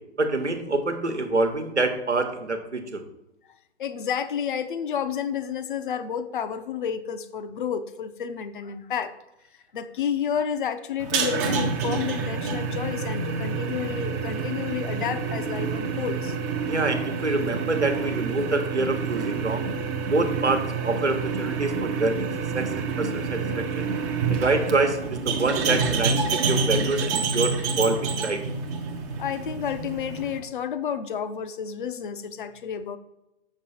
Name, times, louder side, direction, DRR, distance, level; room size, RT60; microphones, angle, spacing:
voice 1, 0.2-3.0 16.7-19.7 20.1-23.9 24.3-28.4, right 2 dB, 85° right, 6 dB, 1.1 m, -26 dB
voice 2, 3.8-9.1 9.7-16.4 24.3-24.4 29.2-33.0, left 8 dB, 50° left, 11 dB, 0.6 m, -30 dB
sound 1, 11.0-30.4, right 4 dB, 15° right, 0.5 m, -28 dB
7.0 x 6.0 x 4.2 m, 0.90 s
figure-of-eight pair, 120°, 34 cm